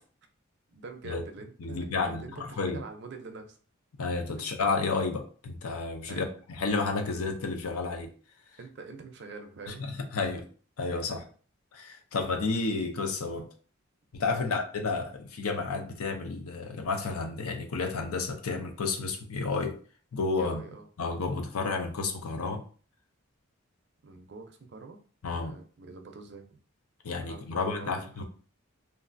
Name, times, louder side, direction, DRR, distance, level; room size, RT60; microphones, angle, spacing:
voice 1, 0.7-3.6 6.1-6.3 8.6-9.9 11.1-11.2 14.4-14.6 20.4-20.9 24.0-25.0 25.3-26.6 27.3-28.2, right 3 dB, 50° right, 0.5 m, -45 dB
voice 2, 1.6-2.8 4.0-8.1 9.7-10.5 10.8-11.2 11.7-13.5 14.1-19.8 20.1-20.6 21.0-22.6 25.2-25.5 27.0-28.2, left 4 dB, 80° left, 0.6 m, -31 dB
3.2 x 2.4 x 2.5 m
head